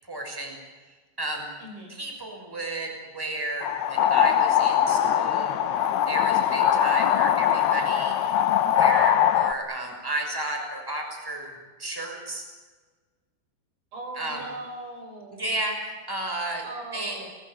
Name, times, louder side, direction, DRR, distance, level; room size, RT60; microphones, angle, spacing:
voice 1, 0.1-0.5 1.2-1.5 1.9-5.6 5.8-11.5 11.8-12.5 14.2-14.4 15.3-16.7 16.9-17.3, right 1 dB, 5° right, 2 dB, 6.0 m, -33 dB
voice 2, 1.6-2.0 13.9-15.4 16.6-17.3, right 2 dB, 55° right, 3 dB, 6.4 m, -39 dB
sound 1, 3.6-9.5, left 10 dB, 70° left, 3.1 m, -22 dB
29.0 x 20.5 x 9.6 m, 1.4 s
omnidirectional pair, 5.0 m